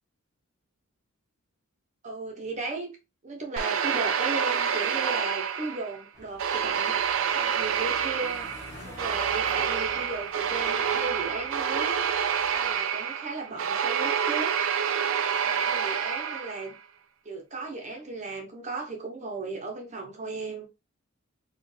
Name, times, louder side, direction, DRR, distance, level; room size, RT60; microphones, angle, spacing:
voice 1, 2.0-3.0 3.2-7.0 7.3-8.5 8.8-12.1 12.5-14.5 15.4-16.8 17.2-20.6, right 3 dB, 35° right, 0.8 m, -36 dB
sound 1, 3.6-6.0 6.4-16.7, right 7 dB, 70° right, 0.4 m, -28 dB
sound 2, 6.1-12.8, equal, 15° left, 1.4 m, -48 dB
4.3 x 2.4 x 3.2 m
head